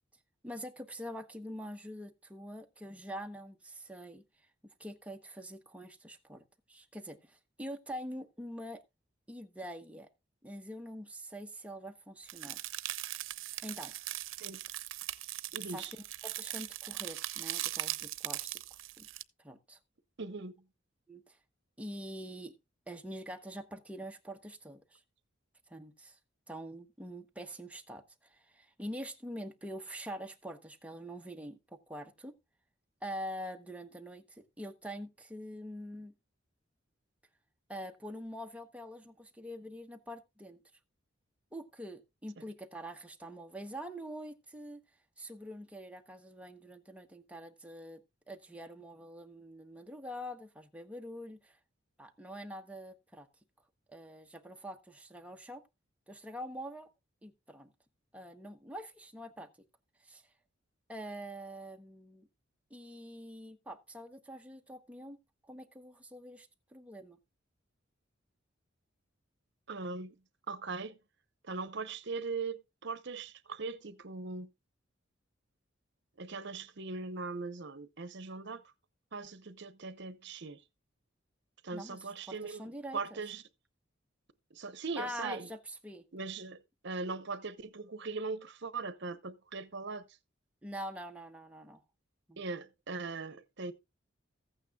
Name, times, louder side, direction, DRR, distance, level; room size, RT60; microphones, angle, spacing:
voice 1, 0.4-4.2 4.8-8.8 9.3-10.1 10.4-12.6 13.6-13.9 15.7-15.9 16.2-18.6 19.0-19.1 19.4-19.8 21.1-21.4 21.8-22.6 22.9-25.0 25.7-26.2 26.5-32.3 33.0-36.1 37.7-40.6 41.5-44.8 45.2-48.0 48.3-51.6 52.0-53.3 53.9-55.6 56.1-56.9 57.2-57.7 58.1-59.5 60.0-60.2 60.9-62.3 62.7-65.2 65.4-67.2 81.7-82.0 82.3-83.2 85.0-86.0 90.6-91.8 92.3-92.4, equal, 5° right, 0.9 m, -45 dB
sound 1, 12.3-19.2, right 15 dB, 90° right, 0.6 m, -40 dB
voice 2, 15.5-15.9 20.2-20.6 69.7-70.2 70.5-71.0 71.4-74.5 76.2-78.6 79.1-80.6 81.6-82.6 82.9-83.4 84.5-85.5 86.1-90.1 92.4-93.7, right 4 dB, 60° right, 0.9 m, -40 dB
15.0 x 9.0 x 2.3 m
head